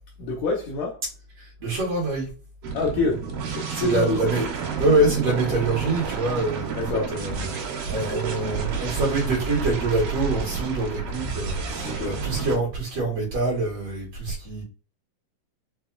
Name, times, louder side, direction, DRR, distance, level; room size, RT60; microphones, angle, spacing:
voice 1, 0.2-1.0 2.7-4.2 6.7-7.2 11.8-12.2, left 3 dB, 75° left, 1.8 m, -27 dB
voice 2, 1.6-2.3 3.8-4.5 4.8-6.8 7.1-7.5 7.9-14.6, right 2 dB, 55° right, 2.2 m, -25 dB
sound 1, 2.6-12.6, right 5 dB, 85° right, 2.6 m, -30 dB
5.8 x 2.3 x 2.2 m
omnidirectional pair, 3.8 m